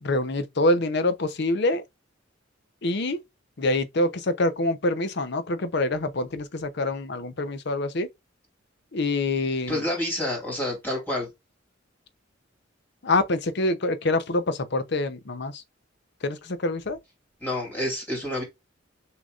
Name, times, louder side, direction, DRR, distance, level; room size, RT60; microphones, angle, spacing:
voice 1, 0.0-1.8 2.8-3.2 3.6-8.1 8.9-9.8 13.0-15.6 16.2-17.0, left 2 dB, 60° left, 0.7 m, -25 dB
voice 2, 9.7-11.3 17.4-18.4, left 1 dB, 10° left, 2.6 m, -28 dB
6.3 x 2.9 x 2.4 m
head